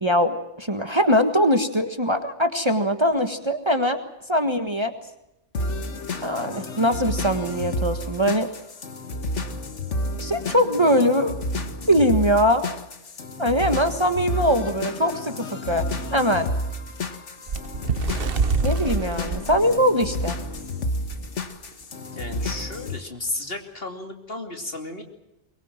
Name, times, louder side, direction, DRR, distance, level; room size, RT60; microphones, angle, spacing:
voice 1, 0.0-4.0 4.3-4.9 6.2-8.5 10.2-11.4 11.9-12.7 13.4-15.9 16.1-16.5 18.6-20.4, equal, 25° right, 7 dB, 1.6 m, -21 dB
sound 1, 5.5-23.0, left 1 dB, 75° left, 1.9 m, -30 dB
Bird, 17.5-20.6 21.1-21.3 21.6-21.8 22.6-22.7, right 5 dB, 50° right, 1.2 m, -27 dB
voice 2, 22.1-25.0, left 2 dB, 50° left, 4 dB, 3.1 m, -33 dB
23.5 x 22.0 x 7.5 m, 0.89 s
omnidirectional pair, 1.2 m